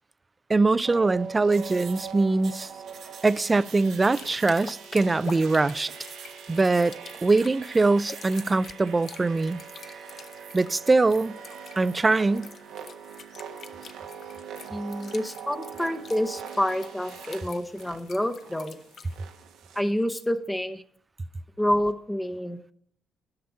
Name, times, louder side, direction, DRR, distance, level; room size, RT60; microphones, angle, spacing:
voice 1, 0.5-2.7 3.2-5.9 6.5-6.9 7.2-9.6 10.5-11.4 11.8-12.5, right 3 dB, 25° right, 0.4 m, -22 dB
sound 1, 0.8-19.8, right 7 dB, 85° right, 1.0 m, -43 dB
sound 2, 1.5-8.6, right 6 dB, 65° right, 1.2 m, -47 dB
sound 3, 3.9-19.2, left 6 dB, 55° left, 0.7 m, -48 dB
voice 2, 14.7-18.8 19.8-20.8 21.6-22.7, equal, 10° left, 0.8 m, -28 dB
10.5 x 5.9 x 5.3 m
cardioid pair, 90°, 0 cm